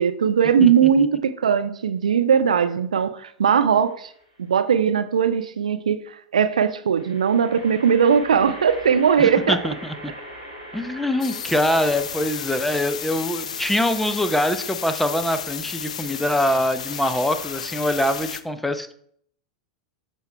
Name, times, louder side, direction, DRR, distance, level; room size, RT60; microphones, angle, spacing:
voice 1, 0.0-4.1 4.4-9.6, right 7 dB, 70° right, 0.4 m, -19 dB
sound 1, 3.8-4.4 6.9-18.3, equal, 85° left, 3.1 m, -43 dB
voice 2, 9.2-10.1 10.7-18.9, left 1 dB, 5° left, 0.5 m, -24 dB
sound 2, 11.2-18.4, left 7 dB, 65° left, 0.4 m, -33 dB
12.0 x 4.5 x 2.2 m
figure-of-eight pair, 90°, 4 cm